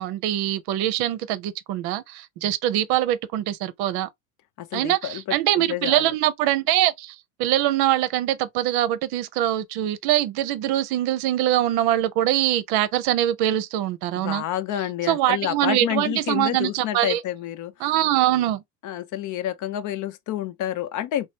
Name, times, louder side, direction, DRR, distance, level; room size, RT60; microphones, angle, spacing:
voice 1, 0.0-4.1 4.7-14.4 15.1-17.2 17.8-18.6, right 13 dB, 55° right, 0.7 m, -23 dB
voice 2, 4.6-6.2 14.2-18.0 18.8-21.3, left 12 dB, 40° left, 0.6 m, -29 dB
3.0 x 2.0 x 2.7 m
supercardioid pair, 95°, 45 cm